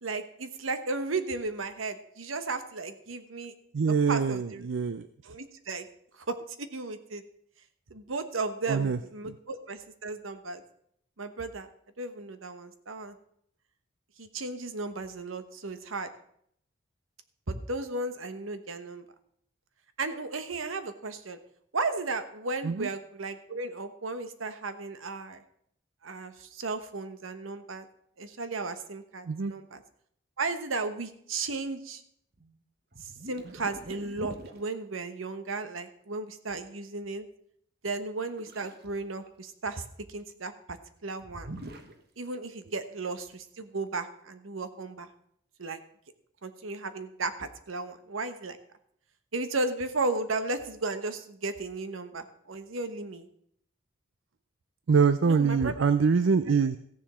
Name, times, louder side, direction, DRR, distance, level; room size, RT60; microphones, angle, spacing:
voice 1, 0.0-3.5 4.1-4.7 5.3-5.9 6.2-7.2 7.9-10.6 11.2-11.7 12.0-13.2 14.2-16.1 17.5-19.0 20.0-21.4 21.7-25.4 26.0-27.9 28.2-29.8 30.4-32.0 33.0-37.3 37.8-39.8 40.1-40.8 41.0-41.5 42.2-45.1 45.6-45.8 46.4-48.6 49.3-53.3 55.2-55.9, right 3 dB, 90° right, 10 dB, 1.1 m, -35 dB
voice 2, 3.7-5.3 8.7-9.0 9.2-9.4 22.6-22.9 29.3-29.5 54.9-56.8, right 5 dB, 70° right, 13 dB, 0.5 m, -25 dB
sound 1, 32.3-32.6 32.9-34.6 38.4-38.9 39.2-39.9 41.2-42.0, right 1 dB, 50° right, 1.3 m, -44 dB
15.0 x 7.2 x 6.2 m, 0.68 s
head